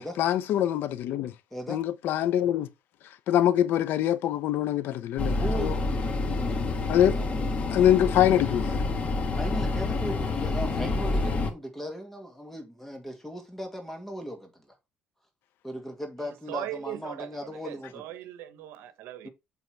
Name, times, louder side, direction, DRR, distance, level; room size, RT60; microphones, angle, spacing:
voice 1, 0.0-1.3 1.7-2.7 3.3-5.7 6.9-7.2 7.7-8.8, left 11 dB, 70° left, 0.7 m, -24 dB
sound 1, 5.2-11.5, left 3 dB, 35° left, 1.4 m, -28 dB
voice 2, 5.4-6.9 7.1-7.5 9.3-14.7 15.6-18.0, equal, 5° left, 2.0 m, -38 dB
voice 3, 16.2-19.3, right 13 dB, 80° right, 1.0 m, -39 dB
8.1 x 3.5 x 4.6 m
cardioid pair, 125°, 4 cm